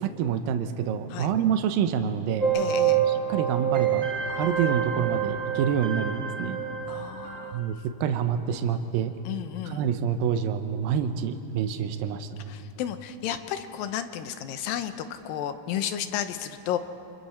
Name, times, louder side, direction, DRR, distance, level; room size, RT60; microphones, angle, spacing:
voice 1, 0.0-2.5 3.1-4.1 4.4-6.6 7.5-9.1 9.7-12.3, right 8 dB, 85° right, 8 dB, 2.6 m, -27 dB
sound 1, 2.4-7.5, right 8 dB, 35° right, 2.5 m, -27 dB
voice 2, 2.5-3.1 6.9-7.6 9.3-9.9 12.5-16.8, left 10 dB, 85° left, 9 dB, 2.6 m, -32 dB
29.0 x 26.5 x 4.3 m, 2.7 s
omnidirectional pair, 4.1 m